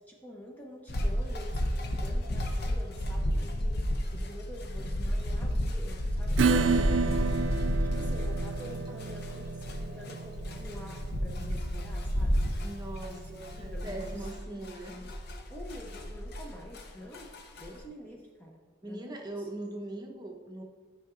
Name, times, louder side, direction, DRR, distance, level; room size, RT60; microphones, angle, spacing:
voice 1, 0.0-6.8 7.9-12.4 13.0-14.3 14.6-15.1 15.5-19.5, left 1 dB, 10° left, -1 dB, 0.6 m, -47 dB
sound 1, 0.9-16.8 17.1-17.8, equal, 55° left, 0.7 m, -32 dB
voice 2, 6.4-7.0 12.6-15.0 18.8-20.6, right 1 dB, 20° right, 0 dB, 0.8 m, -41 dB
Acoustic guitar / Strum, 6.4-13.6, right 4 dB, 80° right, 0.4 m, -31 dB
11.5 x 5.6 x 2.4 m, 1.5 s
head